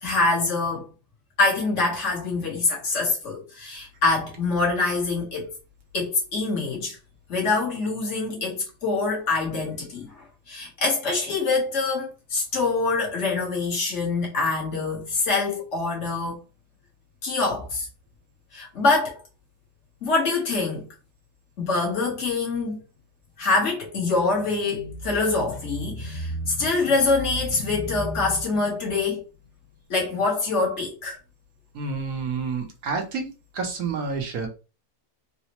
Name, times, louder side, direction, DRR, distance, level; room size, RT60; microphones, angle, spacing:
voice 1, 0.0-0.9 1.4-5.5 5.9-7.0 7.3-16.4 17.2-17.9 18.5-19.2 20.0-20.9 21.6-22.8 23.4-29.2 29.9-31.2, left 3 dB, 55° left, 1.5 m, -25 dB
voice 2, 31.7-33.3 33.5-34.5, right 4 dB, 75° right, 1.3 m, -29 dB
4.0 x 2.1 x 2.8 m
omnidirectional pair, 1.6 m